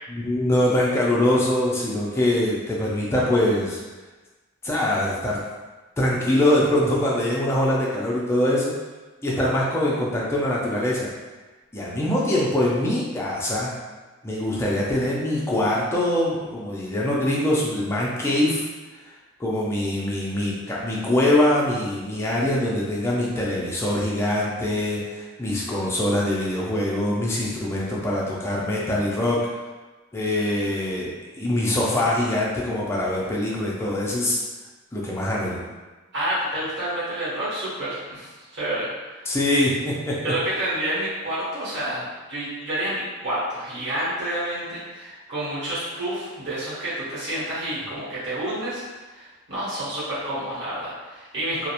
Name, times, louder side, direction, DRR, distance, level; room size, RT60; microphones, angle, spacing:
voice 1, 0.1-3.8 4.6-5.4 6.0-8.7 9.2-11.1 11.7-13.7 14.2-18.6 19.4-29.4 30.1-34.4 34.9-35.6 39.3-40.2, left 1 dB, 10° left, -5 dB, 0.4 m, -23 dB
voice 2, 36.1-39.3 40.2-51.7, right 1 dB, 50° right, -9 dB, 1.0 m, -29 dB
2.4 x 2.0 x 2.8 m, 1.2 s
head